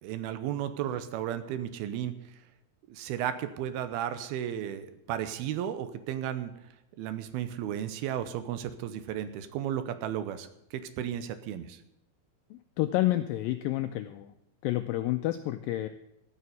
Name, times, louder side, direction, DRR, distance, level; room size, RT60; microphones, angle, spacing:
voice 1, 0.0-2.2 2.9-6.5 7.0-11.8, right 10 dB, 75° right, 11 dB, 2.6 m, -34 dB
voice 2, 12.5-14.3 14.6-15.9, left 15 dB, 85° left, 9 dB, 2.0 m, -29 dB
14.0 x 6.9 x 9.3 m, 0.81 s
omnidirectional pair, 4.6 m